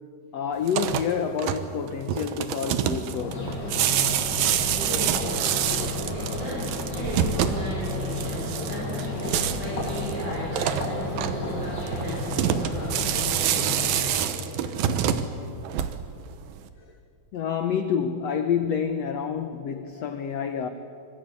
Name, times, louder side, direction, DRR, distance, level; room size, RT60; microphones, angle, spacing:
voice 1, 0.3-3.5 17.3-20.7, left 7 dB, 85° left, 1.4 m, -28 dB
sound 1, 0.6-16.3, right 10 dB, 75° right, 2.7 m, -28 dB
sound 2, 3.2-14.0, left 2 dB, 55° left, 9.5 m, -32 dB
voice 2, 4.9-15.3, right 1 dB, 55° right, 6.3 m, -37 dB
25.5 x 23.5 x 8.3 m
omnidirectional pair, 4.4 m